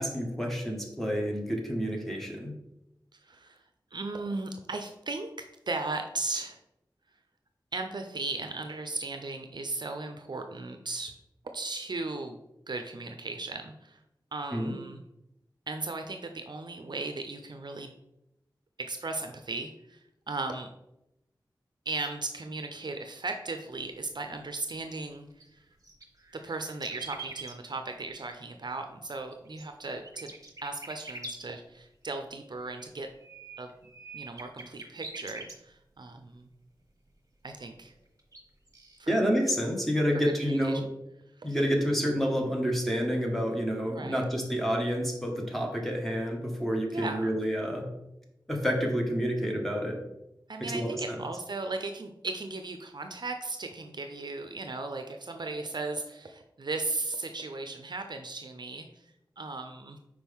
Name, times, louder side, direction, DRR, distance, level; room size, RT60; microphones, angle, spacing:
voice 1, 0.0-2.5 14.5-14.7 39.1-40.8 41.4-47.9 48.5-50.0 50.6-50.9, equal, 5° left, 0 dB, 1.5 m, -29 dB
voice 2, 3.1-3.6 3.9-5.3 5.7-6.6 7.7-11.1 11.5-12.4 12.7-14.0 14.3-15.0 15.7-17.9 18.8-20.7 21.9-25.7 26.3-30.3 30.6-33.1 33.6-33.7 34.1-36.5 37.4-37.9 39.0-39.1 40.5-40.8 41.4-41.6 43.9-44.2 46.9-47.4 50.5-60.0, right 3 dB, 60° right, 6 dB, 0.5 m, -37 dB
sound 1, 25.1-25.2 25.4-27.5 29.3-31.3 32.5-35.6 36.2-36.3 37.6-37.7 38.1-38.4 38.7-39.0, right 3 dB, 40° right, 1.0 m, -44 dB
6.0 x 4.8 x 3.6 m, 0.86 s
wide cardioid pair, 50°, 8 cm